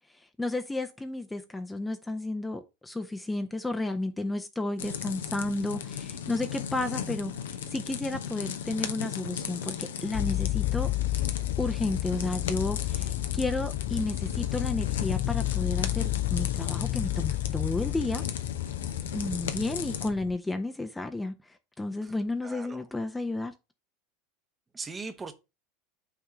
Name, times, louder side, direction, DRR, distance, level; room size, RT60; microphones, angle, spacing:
voice 1, 0.4-7.3 7.7-10.9 11.6-18.2 19.1-23.5, left 2 dB, 10° left, 0.8 m, -32 dB
sound 1, 4.8-20.1, left 8 dB, 70° left, 0.8 m, -36 dB
sound 2, 10.1-20.4, left 17 dB, 45° left, 0.4 m, -31 dB
voice 2, 22.4-22.8 24.7-25.3, right 4 dB, 20° right, 1.0 m, -39 dB
6.0 x 3.5 x 5.5 m
figure-of-eight pair, 75°, 0 cm